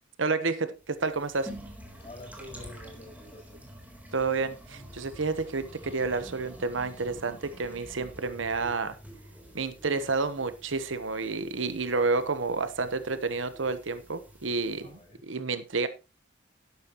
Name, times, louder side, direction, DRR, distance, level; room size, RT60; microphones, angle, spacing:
voice 1, 0.2-1.5 4.1-9.0 9.5-15.0 15.3-15.9, right 4 dB, 70° right, 12 dB, 1.1 m, -30 dB
sound 1, 0.8-15.1, equal, 10° right, 3.5 m, -48 dB
voice 2, 2.0-3.6 14.8-15.4, left 1 dB, 30° left, 0 dB, 7.7 m, -47 dB
12.0 x 11.5 x 3.0 m, 0.28 s
head